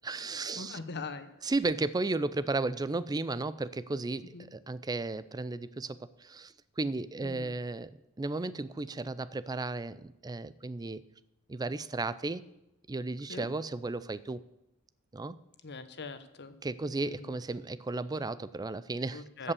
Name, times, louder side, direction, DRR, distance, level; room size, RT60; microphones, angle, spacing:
voice 1, 0.0-0.8 1.4-11.0 11.5-12.4 12.9-14.4 15.1-15.4 16.6-19.5, right 3 dB, 20° right, 17 dB, 0.4 m, -34 dB
voice 2, 0.6-1.3 4.3-4.5 7.2-7.5 13.3-13.5 15.6-16.5 17.0-17.4 19.1-19.5, left 4 dB, 50° left, 11 dB, 1.0 m, -42 dB
14.0 x 5.6 x 8.3 m, 0.91 s
head